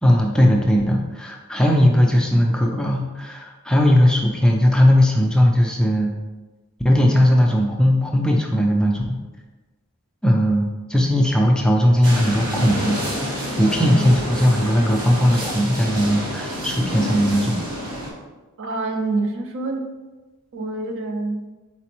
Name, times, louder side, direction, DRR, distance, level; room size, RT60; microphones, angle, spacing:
voice 1, 0.0-6.1 6.8-9.2 10.2-17.6, equal, 5° left, 0 dB, 0.3 m, -18 dB
sound 1, 12.0-18.1, equal, 85° right, 1.1 m, -28 dB
voice 2, 18.6-19.9 20.5-21.4, right 3 dB, 60° right, 4 dB, 0.5 m, -26 dB
4.1 x 4.1 x 2.9 m, 1.2 s
head